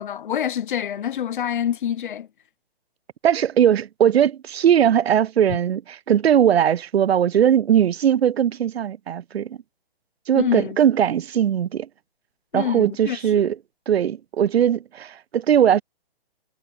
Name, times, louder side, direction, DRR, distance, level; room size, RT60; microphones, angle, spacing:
voice 1, 0.0-2.3 10.3-10.8 12.5-13.4, left 9 dB, 55° left, 1.1 m, -26 dB
voice 2, 3.2-9.6 10.3-11.9 12.5-13.6 13.9-15.8, right 9 dB, 85° right, 0.5 m, -19 dB
hypercardioid pair, 145°, 30 cm